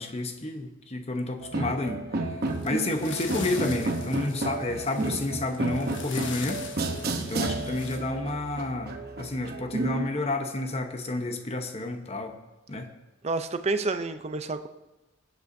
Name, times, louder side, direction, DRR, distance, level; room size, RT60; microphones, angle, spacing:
voice 1, 0.0-2.0 2.6-6.6 7.2-12.4 12.7-12.9, left 2 dB, 30° left, 6 dB, 0.9 m, -30 dB
sound 1, 1.4-10.1, right 2 dB, 50° right, 0.9 m, -32 dB
Plastic grocery bags, 2.4-8.0, left 4 dB, 65° left, 1.2 m, -41 dB
voice 2, 13.2-14.7, right 3 dB, 35° right, 10 dB, 0.5 m, -29 dB
21.0 x 8.2 x 2.6 m, 1.1 s
head